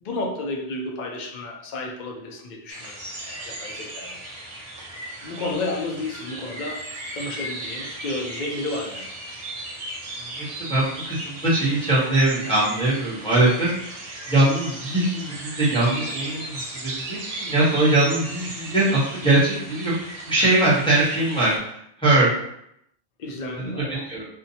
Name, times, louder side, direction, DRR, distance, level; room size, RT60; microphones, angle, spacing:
voice 1, 0.0-3.0 3.2-4.2 5.2-6.9 7.1-9.1 23.2-24.0, left 2 dB, 55° left, 1 dB, 0.5 m, -31 dB
sound 1, 2.7-21.6, right 1 dB, 65° right, 0.3 m, -36 dB
voice 2, 10.3-22.3 23.6-24.3, right 2 dB, 5° left, -9 dB, 0.7 m, -22 dB
2.7 x 2.2 x 2.7 m, 0.76 s
omnidirectional pair, 1.2 m